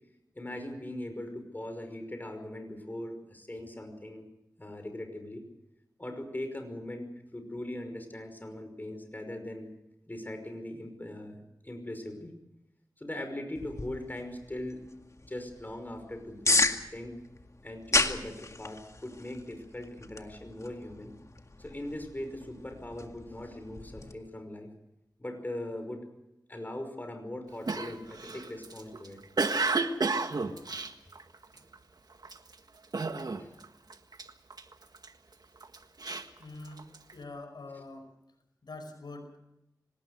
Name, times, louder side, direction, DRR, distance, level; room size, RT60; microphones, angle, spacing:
voice 1, 0.3-4.3 4.6-5.4 6.0-7.1 7.3-9.7 10.1-12.3 13.0-14.8 15.2-17.2 17.6-21.1 21.6-24.7 25.2-26.1 26.5-29.2 31.5-31.6 33.4-33.6 37.7-37.8, left 1 dB, 25° left, 6 dB, 5.5 m, -40 dB
sound 1, 13.6-24.1, left 2 dB, 45° left, 2.0 m, -34 dB
Cough, 27.7-31.7 32.2-32.5 32.9-33.6 33.9-35.1 35.6-37.1, right 3 dB, 65° right, 1.7 m, -31 dB
voice 2, 36.4-38.1 38.6-39.4, left 2 dB, 85° left, 6 dB, 5.2 m, -45 dB
25.0 x 19.5 x 6.7 m, 0.88 s
wide cardioid pair, 60°, 7 cm